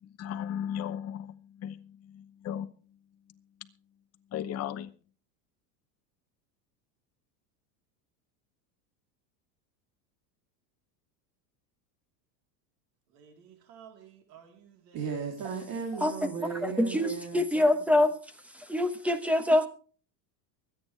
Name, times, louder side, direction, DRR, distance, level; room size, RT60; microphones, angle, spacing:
voice 1, 0.0-2.7 4.3-4.9, left 9 dB, 30° left, 0.9 m, -36 dB
voice 2, 13.1-15.2, right 8 dB, 85° right, 3.7 m, -54 dB
voice 3, 14.9-17.4, right 5 dB, 45° right, 3.1 m, -35 dB
voice 4, 16.6-18.1 18.7-19.7, left 1 dB, 5° right, 1.0 m, -24 dB
24.0 x 9.2 x 3.3 m
supercardioid pair, 150°, 48 cm